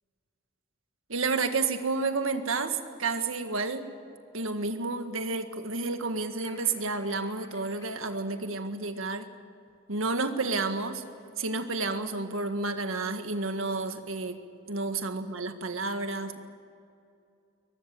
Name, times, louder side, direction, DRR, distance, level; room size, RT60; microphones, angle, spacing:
voice 1, 1.1-3.9 4.3-9.3 9.9-11.0 11.4-14.4 14.7-16.4, right 3 dB, 85° right, 7 dB, 1.8 m, -30 dB
sound 1, 6.4-7.9, left 1 dB, 15° left, 3.8 m, -54 dB
22.5 x 20.5 x 7.7 m, 2.5 s
head